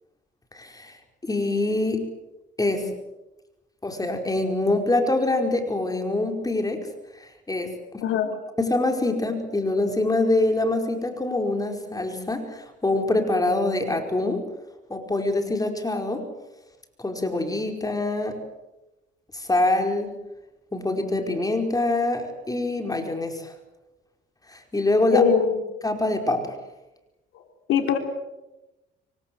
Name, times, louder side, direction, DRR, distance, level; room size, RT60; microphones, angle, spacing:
voice 1, 0.5-2.1 2.6-2.9 3.8-6.9 7.1-8.0 8.6-14.5 14.9-16.3 17.0-18.4 19.3-20.2 20.7-23.5 24.5-25.3 25.8-26.6, left 2 dB, 20° left, 4 dB, 5.0 m, -25 dB
voice 2, 25.1-25.5 27.7-28.0, left 7 dB, 85° left, 5 dB, 4.1 m, -21 dB
27.0 x 24.5 x 7.9 m, 1.0 s
cardioid pair, 90°, 20 cm